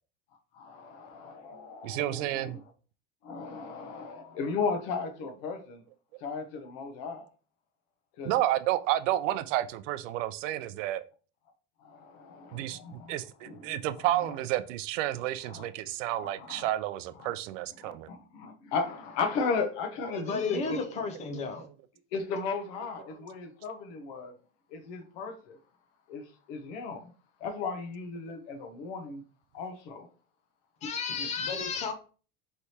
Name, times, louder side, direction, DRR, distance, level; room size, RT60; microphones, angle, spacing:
voice 1, 0.5-2.6 3.2-5.8 6.2-7.3 8.2-8.3 11.8-13.1 13.4-14.3 15.4-15.7 16.1-16.7 17.2-17.3 17.8-20.8 22.1-24.4 24.7-25.6 26.1-27.1 27.4-29.2 29.5-30.1 31.2-31.3, left 4 dB, 60° left, 0.9 m, -36 dB
voice 2, 1.8-2.6 8.2-11.0 12.5-18.1, right 14 dB, 80° right, 0.5 m, -31 dB
voice 3, 20.3-21.7 30.8-31.9, left 5 dB, 20° left, 0.4 m, -33 dB
4.6 x 3.3 x 2.8 m
supercardioid pair, 160°, 37 cm